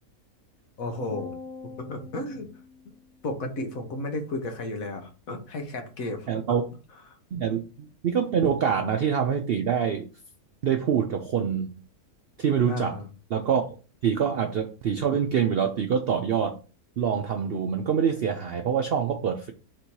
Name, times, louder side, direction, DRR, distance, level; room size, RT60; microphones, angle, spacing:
voice 1, 0.8-1.4 1.6-2.5 3.2-6.6 12.7-13.1, left 2 dB, 70° left, 4 dB, 1.4 m, -33 dB
sound 1, 1.1-3.5, left 4 dB, 40° left, 0.7 m, -44 dB
voice 2, 6.3-6.6 7.3-10.1 10.6-11.7 12.4-13.0 13.3-13.6 14.0-16.6 17.0-19.5, right 7 dB, 70° right, 5 dB, 0.5 m, -25 dB
4.2 x 2.7 x 4.5 m, 0.34 s
omnidirectional pair, 1.5 m